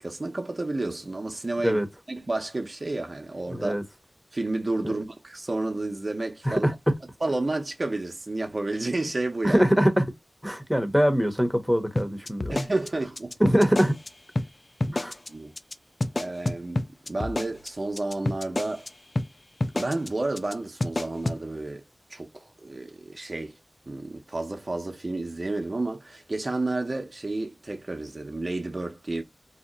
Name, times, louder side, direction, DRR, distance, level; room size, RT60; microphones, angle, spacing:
voice 1, 0.0-1.8 2.1-3.7 4.3-6.7 7.2-9.6 12.5-13.4 15.3-15.5 16.1-18.9 19.7-21.8 22.1-23.6 23.9-29.2, right 2 dB, 50° right, 0.5 m, -31 dB
voice 2, 3.5-3.8 6.4-6.7 9.4-10.1 10.4-12.6 13.4-14.0 14.9-15.1, equal, ahead, 0.7 m, -23 dB
sound 1, 12.0-14.1 14.4-14.5 14.8-15.3 15.6-15.7 16.0-18.9 19.2-19.3 19.6-20.1 20.4-20.5 20.8-21.4, left 2 dB, 45° left, 0.3 m, -28 dB
2.7 x 2.1 x 3.8 m
wide cardioid pair, 45°, 0 cm